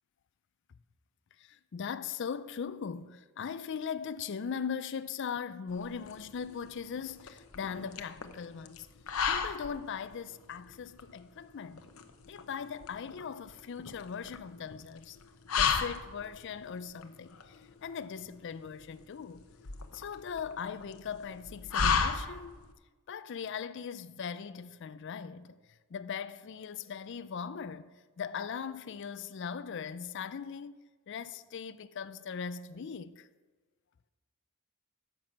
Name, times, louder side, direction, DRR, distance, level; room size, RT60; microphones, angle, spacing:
voice 1, 1.7-8.9 9.3-11.8 12.3-15.2 15.6-17.4 17.8-19.4 19.9-22.6 23.1-25.6 25.9-27.9 28.2-30.8 31.1-33.3, left 6 dB, 55° left, 0.4 m, -39 dB
sound 1, 5.7-22.7, left 6 dB, 85° left, 0.8 m, -35 dB
10.5 x 6.2 x 7.4 m
head